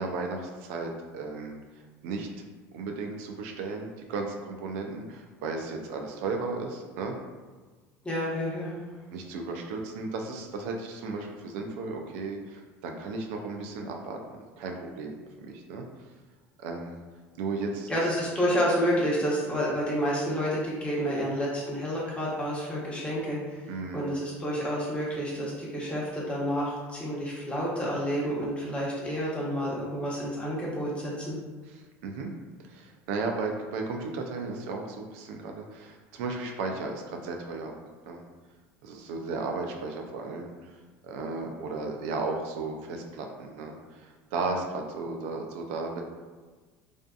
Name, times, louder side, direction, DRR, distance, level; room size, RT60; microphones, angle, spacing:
voice 1, 0.0-1.6 2.0-2.3 2.7-7.2 9.1-14.2 14.6-15.8 16.6-17.0 17.4-17.9 23.7-24.1 31.7-32.3 32.6-37.8 38.1-38.2 38.8-40.5 41.0-46.0, right 3 dB, 75° right, 2 dB, 0.3 m, -35 dB
voice 2, 8.0-8.7 17.9-23.4 23.9-31.3, equal, 15° left, -6 dB, 0.9 m, -29 dB
2.5 x 2.4 x 2.3 m, 1.4 s
supercardioid pair, 90°, 7 cm